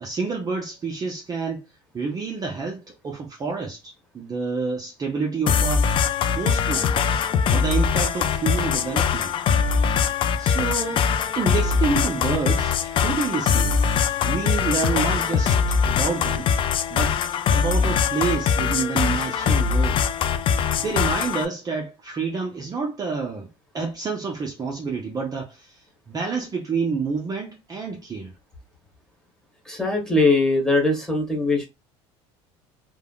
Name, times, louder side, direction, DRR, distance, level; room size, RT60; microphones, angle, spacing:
voice 1, 0.0-1.6 1.9-7.0 7.5-9.3 10.4-13.8 14.2-16.5 16.9-17.2 17.5-20.0 20.8-23.5 23.7-28.3, right 5 dB, 25° right, 0.5 m, -28 dB
sound 1, 5.5-21.5, left 6 dB, 40° left, 0.3 m, -22 dB
voice 2, 29.7-31.7, left 2 dB, 5° left, 1.3 m, -21 dB
3.3 x 2.0 x 2.2 m
supercardioid pair, 100°, 14 cm